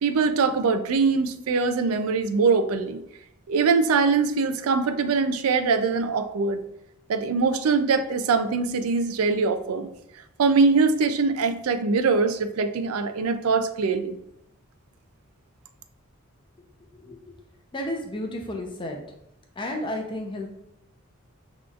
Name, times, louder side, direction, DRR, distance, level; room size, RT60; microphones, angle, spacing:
voice 1, 0.0-3.0 3.5-6.6 7.1-9.9 10.4-14.2, right 4 dB, 90° right, 9 dB, 0.4 m, -22 dB
voice 2, 16.9-17.3 17.7-19.0 19.6-20.5, left 1 dB, 20° left, 2 dB, 0.6 m, -32 dB
6.0 x 3.0 x 2.4 m, 0.81 s
head